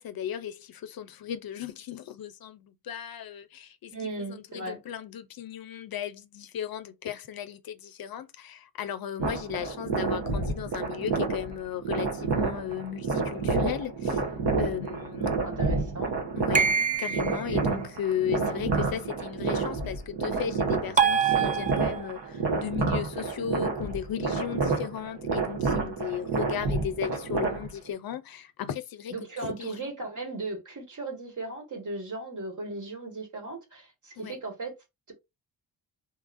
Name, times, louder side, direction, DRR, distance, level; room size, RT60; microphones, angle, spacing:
voice 1, 0.0-3.9 4.3-14.2 14.6-15.3 16.4-16.7 17.0-29.9 34.2-34.4, left 9 dB, 55° left, 0.5 m, -36 dB
voice 2, 3.9-4.8 15.2-16.1 29.1-34.7, right 3 dB, 45° right, 1.5 m, -37 dB
sound 1, 9.2-27.9, right 4 dB, 75° right, 1.1 m, -29 dB
sound 2, 16.5-17.5 21.0-22.2, right 6 dB, 20° right, 0.4 m, -25 dB
3.0 x 2.3 x 2.5 m
supercardioid pair, 55°, 42 cm